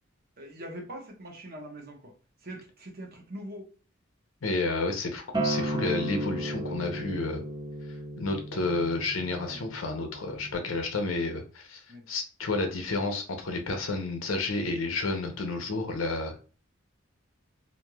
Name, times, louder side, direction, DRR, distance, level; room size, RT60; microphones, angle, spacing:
voice 1, 0.4-2.1 2.4-3.7 9.4-9.7 11.9-12.0 15.9-16.0, right 1 dB, 50° right, 2 dB, 0.8 m, -43 dB
voice 2, 4.4-7.4 8.2-11.8 12.1-16.4, left 3 dB, 70° left, 4 dB, 0.7 m, -30 dB
Acoustic guitar, 5.3-10.5, right 1 dB, 20° right, 0.6 m, -34 dB
3.1 x 2.5 x 2.2 m, 0.36 s
head